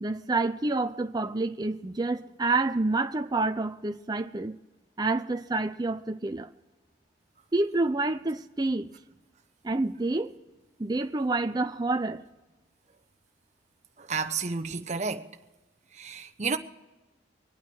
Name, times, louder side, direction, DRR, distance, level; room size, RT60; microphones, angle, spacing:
voice 1, 0.0-4.6 5.0-6.5 7.5-8.9 9.6-10.3 10.8-12.2, right 2 dB, 20° right, 0.5 m, -28 dB
voice 2, 14.0-15.3 15.9-16.6, right 4 dB, 35° right, 0.9 m, -31 dB
25.5 x 9.1 x 4.5 m
head